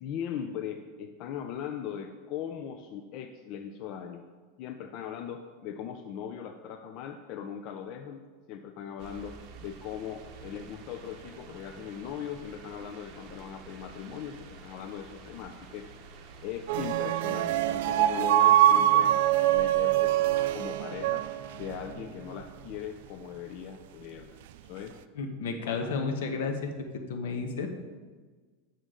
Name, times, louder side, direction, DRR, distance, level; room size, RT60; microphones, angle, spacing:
voice 1, 0.0-4.2 4.6-8.2 8.5-15.9 16.4-19.2 19.5-20.2 20.5-21.2 21.5-25.0 25.6-26.0, left 8 dB, 45° left, 6 dB, 0.5 m, -39 dB
sound 1, 9.0-17.0, right 5 dB, 50° right, 0.9 m, -49 dB
sound 2, 16.7-22.0, right 13 dB, 65° right, 0.3 m, -24 dB
voice 2, 25.1-27.7, left 4 dB, 75° left, 5 dB, 1.1 m, -32 dB
8.1 x 6.3 x 3.8 m, 1.4 s
supercardioid pair, 145°, 0 cm